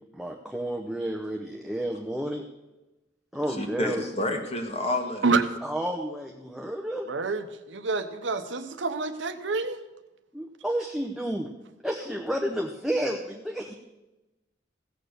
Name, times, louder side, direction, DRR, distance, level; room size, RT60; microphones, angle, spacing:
voice 1, 0.1-2.4 3.3-4.0 5.6-7.1 10.3-11.5 11.8-13.7, right 1 dB, ahead, 1 dB, 0.7 m, -31 dB
voice 2, 3.5-5.2, left 1 dB, 35° left, 4 dB, 1.6 m, -29 dB
voice 3, 7.1-9.8, right 4 dB, 80° right, 9 dB, 0.9 m, -27 dB
16.0 x 6.7 x 6.6 m, 1.0 s
head